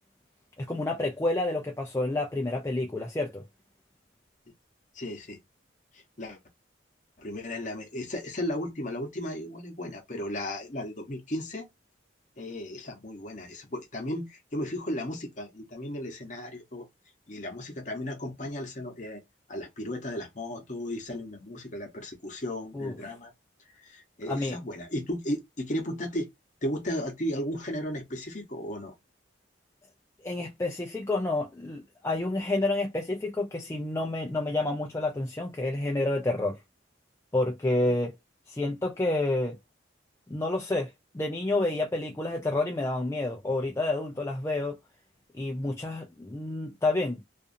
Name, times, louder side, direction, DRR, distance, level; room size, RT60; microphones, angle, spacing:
voice 1, 0.6-3.4 22.7-23.0 24.3-24.6 30.2-36.6 37.3-38.1 38.5-39.6 40.3-44.8 45.3-47.2, left 2 dB, 15° left, 0.3 m, -29 dB
voice 2, 4.9-5.4 5.9-6.4 7.2-11.7 12.4-16.9 17.3-19.2 19.5-23.3 23.7-26.3 26.6-28.9, left 1 dB, 40° left, 0.8 m, -35 dB
2.5 x 2.4 x 2.5 m
head